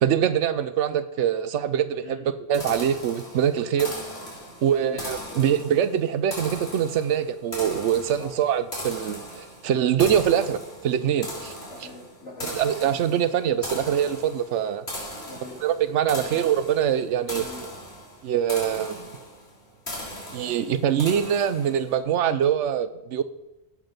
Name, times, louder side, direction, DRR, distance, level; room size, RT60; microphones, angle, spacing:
voice 1, 0.0-3.9 4.6-11.5 12.4-14.8 15.6-17.4 18.2-19.1 20.3-23.2, right 9 dB, 90° right, 13 dB, 1.0 m, -24 dB
sound 1, 2.5-21.9, left 1 dB, 70° left, 3.0 m, -38 dB
voice 2, 11.7-12.6 15.3-15.6 16.2-16.4 17.3-17.7, left 2 dB, 90° left, -4 dB, 3.5 m, -42 dB
17.0 x 6.0 x 5.2 m, 1.0 s
omnidirectional pair, 1.2 m